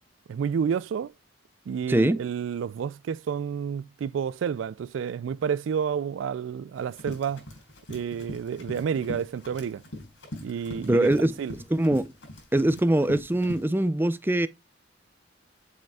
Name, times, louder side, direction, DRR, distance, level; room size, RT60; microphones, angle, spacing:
voice 1, 0.3-1.1 1.7-7.4 7.9-9.8 10.4-11.1 11.4-11.5, right 7 dB, 80° right, 0.3 m, -30 dB
voice 2, 1.9-2.2 10.8-11.3 11.7-12.1 12.5-14.5, right 1 dB, 10° right, 0.5 m, -23 dB
Run, 6.8-13.6, left 1 dB, 70° left, 5.2 m, -42 dB
7.8 x 7.4 x 2.3 m
head